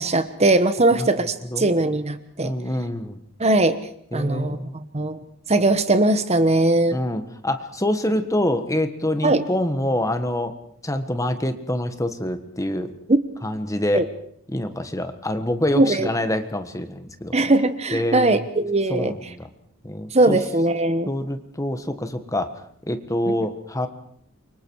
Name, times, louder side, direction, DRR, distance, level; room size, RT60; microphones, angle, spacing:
voice 1, 0.0-2.5 3.4-3.8 4.1-5.2 5.5-7.0 9.2-9.4 13.9-14.1 15.8-16.1 17.3-19.1 20.1-21.1, right 2 dB, 30° right, 11 dB, 1.1 m, -20 dB
voice 2, 2.4-3.2 4.1-4.7 6.9-10.5 10.8-12.9 13.4-14.0 14.5-17.3 17.9-18.5 18.9-19.5 19.8-20.4 21.1-22.5 22.9-23.9, left 1 dB, 15° left, 9 dB, 1.5 m, -26 dB
28.5 x 24.5 x 4.8 m, 0.66 s
head